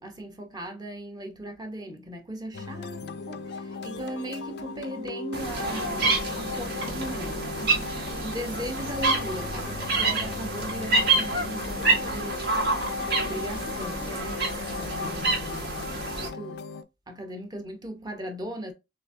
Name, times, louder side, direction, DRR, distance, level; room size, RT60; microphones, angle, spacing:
voice 1, 0.0-7.9 8.1-12.6 13.2-16.7 17.1-18.7, right 1 dB, 20° right, 0.7 m, -38 dB
sound 1, 2.5-16.8, left 4 dB, 60° left, 0.4 m, -36 dB
sound 2, 5.3-16.3, right 3 dB, 65° right, 1.3 m, -28 dB
3.8 x 3.1 x 2.6 m
head